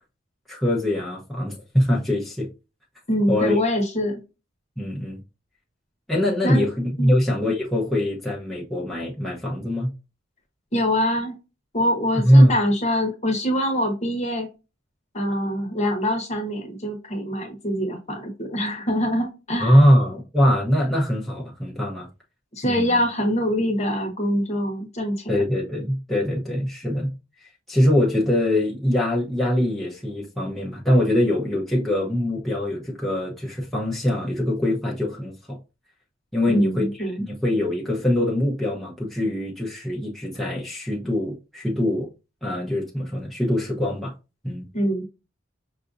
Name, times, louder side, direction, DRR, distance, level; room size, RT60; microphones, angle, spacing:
voice 1, 0.5-2.5 3.3-3.6 4.8-5.2 6.1-9.9 12.1-12.5 19.6-22.1 22.6-23.0 25.3-27.1 27.7-35.6 36.3-36.9 37.2-42.1 42.4-44.1 44.4-44.6, left 1 dB, ahead, 0.8 m, -22 dB
voice 2, 3.1-4.2 6.4-6.7 7.0-7.2 10.7-11.4 11.7-14.5 15.1-19.8 22.5-25.3 36.5-37.2 44.7-45.1, equal, 35° left, 1.0 m, -24 dB
5.7 x 2.6 x 2.5 m
head